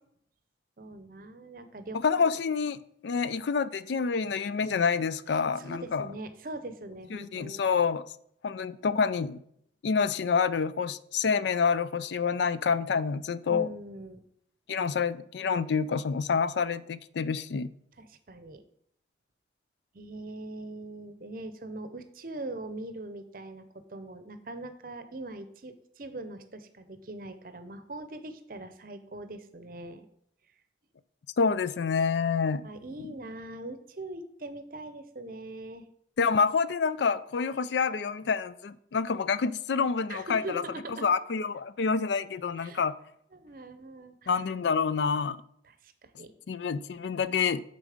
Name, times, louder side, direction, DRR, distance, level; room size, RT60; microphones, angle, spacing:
voice 1, 0.8-2.3 3.1-3.2 5.3-7.6 13.5-14.2 18.0-18.6 19.9-23.6 23.9-30.1 32.6-35.8 40.1-41.0 42.6-42.8 43.3-44.4 45.6-46.3, right 2 dB, 50° right, 0.7 m, -42 dB
voice 2, 2.0-6.1 7.1-8.0 8.4-9.4 9.8-13.7 14.7-17.7 31.4-32.7 36.2-40.6 40.9-42.9 44.3-45.4 46.5-47.6, left 5 dB, 75° left, 0.4 m, -27 dB
10.0 x 4.1 x 5.0 m
head